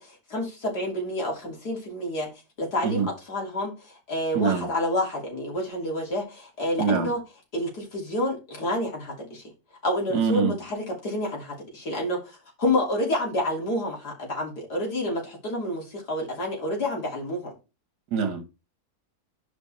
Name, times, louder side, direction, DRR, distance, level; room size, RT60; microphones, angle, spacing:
voice 1, 0.0-2.3 2.6-7.2 7.5-9.4 9.8-17.5, left 1 dB, 75° left, 3.5 m, -29 dB
voice 2, 4.4-4.7 6.8-7.1 10.1-10.5 18.1-18.5, right 6 dB, 75° right, 1.9 m, -24 dB
9.7 x 5.3 x 4.1 m
omnidirectional pair, 1.7 m